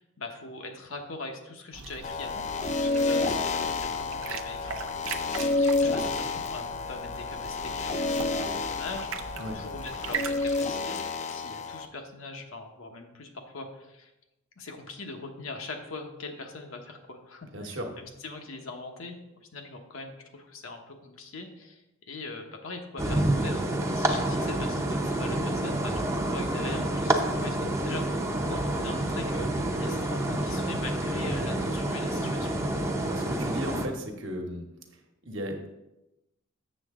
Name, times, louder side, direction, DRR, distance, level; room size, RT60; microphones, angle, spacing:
voice 1, 0.0-2.4 2.8-4.7 5.0-5.1 5.4-11.0 11.3-14.1 14.6-32.5, left 3 dB, 80° left, 3 dB, 1.1 m, -42 dB
sound 1, 1.7-10.6, right 6 dB, 80° right, 0.6 m, -40 dB
sound 2, 2.0-11.9, left 3 dB, 35° left, 0.5 m, -30 dB
voice 2, 17.5-17.9 33.1-34.6 35.3-35.7, equal, 60° right, 3 dB, 1.2 m, -35 dB
sound 3, 23.0-33.9, right 1 dB, 15° right, 0.6 m, -28 dB
7.6 x 6.8 x 3.7 m, 0.95 s
head